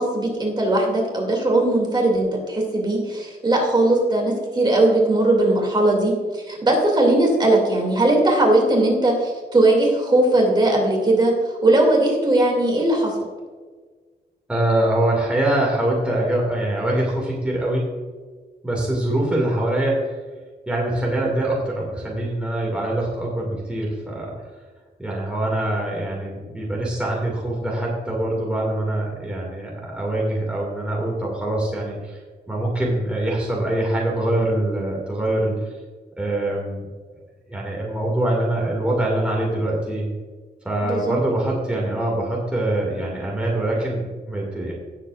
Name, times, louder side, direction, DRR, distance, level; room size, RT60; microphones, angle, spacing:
voice 1, 0.0-11.3 11.6-13.1 40.8-41.1, right 2 dB, 25° right, 0 dB, 2.4 m, -19 dB
voice 2, 14.5-18.0 18.6-20.1 20.7-24.3 25.0-32.2 32.5-35.7 36.2-36.9 37.5-40.1 40.6-44.7, right 1 dB, 5° right, -4 dB, 2.1 m, -24 dB
18.0 x 7.5 x 2.5 m, 1.4 s
wide cardioid pair, 155°, 17 cm